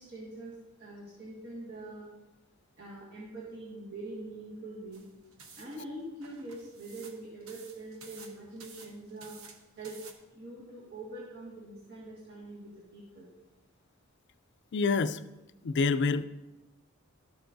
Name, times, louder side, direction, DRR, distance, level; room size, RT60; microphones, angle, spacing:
voice 1, 0.0-2.1 2.8-5.0 5.6-9.3 9.8-10.0 10.3-13.3, right 2 dB, 50° right, -6 dB, 1.7 m, -44 dB
sound 1, 4.9-10.1, right 5 dB, 80° right, 1.0 m, -53 dB
voice 2, 14.7-15.2 15.6-16.3, left 4 dB, 55° left, 11 dB, 0.4 m, -27 dB
12.5 x 7.0 x 2.6 m, 1.0 s
head